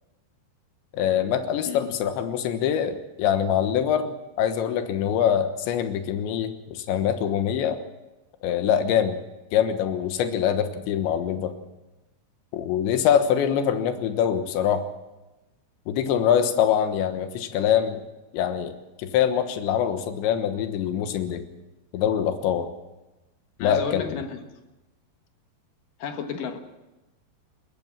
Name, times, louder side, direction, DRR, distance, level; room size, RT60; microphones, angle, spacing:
voice 1, 0.9-7.8 8.4-9.2 9.5-11.5 12.5-14.8 15.9-18.0 18.3-21.4 21.9-22.7 23.6-24.2, left 9 dB, 85° left, 8 dB, 3.6 m, -24 dB
voice 2, 23.6-24.4 26.0-26.6, left 6 dB, 60° left, 6 dB, 2.7 m, -32 dB
21.5 x 18.0 x 7.2 m, 1.0 s
omnidirectional pair, 5.0 m